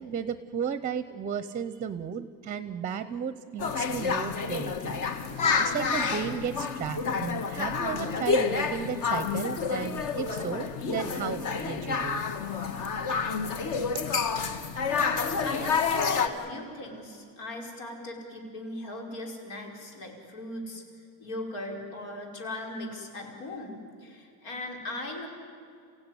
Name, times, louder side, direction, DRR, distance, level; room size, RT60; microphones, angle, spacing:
voice 1, 0.0-12.2, right 7 dB, 20° right, 13 dB, 0.6 m, -34 dB
sound 1, 3.6-16.3, left 5 dB, 50° left, 1.6 m, -29 dB
voice 2, 15.4-20.8 21.2-25.3, left 2 dB, 85° left, 2 dB, 5.2 m, -38 dB
29.0 x 16.0 x 9.9 m, 2.3 s
cardioid pair, 165°, 40 cm